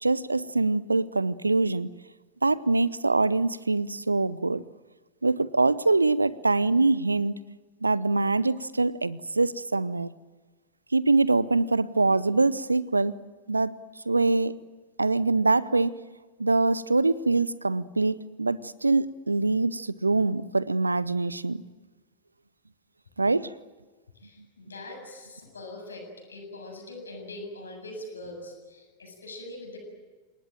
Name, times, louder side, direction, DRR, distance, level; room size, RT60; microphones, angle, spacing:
voice 1, 0.0-1.9 2.4-4.6 5.2-7.3 7.8-10.1 10.9-13.2 13.5-13.7 14.1-14.5 15.0-15.9 16.4-21.6 23.2-23.5, right 3 dB, 80° right, 21 dB, 0.7 m, -24 dB
voice 2, 24.1-29.8, left 1 dB, 75° left, 3 dB, 7.6 m, -42 dB
29.0 x 19.0 x 9.0 m, 1.3 s
figure-of-eight pair, 90°, 0 cm